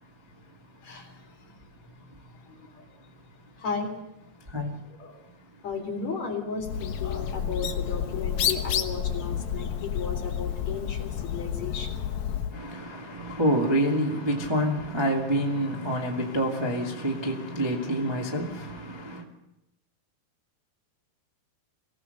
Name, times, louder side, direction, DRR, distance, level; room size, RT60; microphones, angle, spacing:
voice 1, 0.8-1.1 1.4-1.5 2.5-2.8 3.6-3.9 5.0-5.2 5.6-12.0, left 5 dB, 45° left, 4.5 m, -35 dB
Bird, 6.6-12.6, left 9 dB, 60° left, 2.1 m, -30 dB
voice 2, 12.5-19.2, equal, 10° right, 1.1 m, -27 dB
24.5 x 18.0 x 6.8 m
omnidirectional pair, 4.8 m